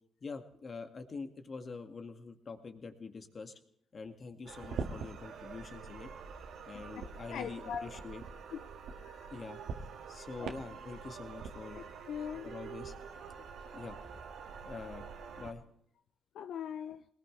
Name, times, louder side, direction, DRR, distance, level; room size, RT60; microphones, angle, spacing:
voice 1, 0.2-3.5 3.9-6.1 6.6-8.2 9.3-9.6 10.1-11.8 12.2-12.9 13.6-14.0 14.6-15.0 15.4-15.6, left 4 dB, 40° left, 1.9 m, -45 dB
sound 1, 4.5-15.5, right 6 dB, 70° right, 1.8 m, -45 dB
voice 2, 7.3-8.0 8.5-8.6 9.0-9.3 10.4-10.5 11.7-12.5 13.7-13.8 16.3-17.0, left 8 dB, 75° left, 0.6 m, -41 dB
22.0 x 19.0 x 3.3 m
cardioid pair, 90°, 0 cm